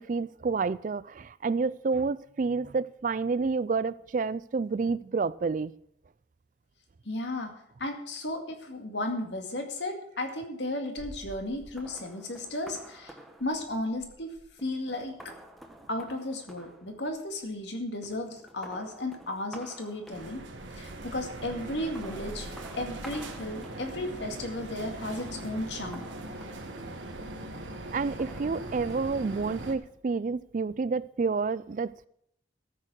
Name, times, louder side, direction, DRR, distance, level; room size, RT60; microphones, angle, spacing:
voice 1, 0.0-5.7 27.9-32.1, right 4 dB, 45° right, 18 dB, 0.4 m, -29 dB
voice 2, 7.0-7.5 7.8-15.3 15.9-20.4 20.8-22.5 22.7-26.1, left 1 dB, 70° left, 4 dB, 2.2 m, -34 dB
sound 1, 11.0-17.7 18.0-20.7 21.6-24.2 25.0-27.2 27.9-29.0, equal, ahead, 1.0 m, -50 dB
sound 2, 20.1-29.7, right 1 dB, 85° right, 1.6 m, -40 dB
13.5 x 6.8 x 6.2 m, 0.71 s
head